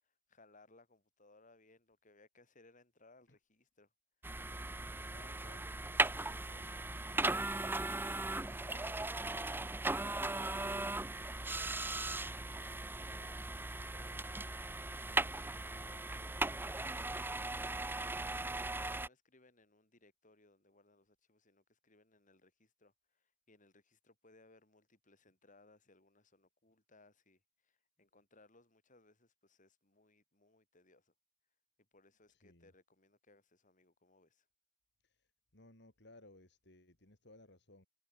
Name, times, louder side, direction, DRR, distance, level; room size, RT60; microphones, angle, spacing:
voice 1, 0.0-3.9 4.8-14.3 15.0-17.7 18.4-31.1 31.9-34.5, left 2 dB, 45° left, 8.0 m, -66 dB
sound 1, 4.2-19.1, right 2 dB, 10° right, 0.8 m, -38 dB
voice 2, 32.3-32.7 35.0-37.9, left 2 dB, 65° left, 4.2 m, -62 dB
head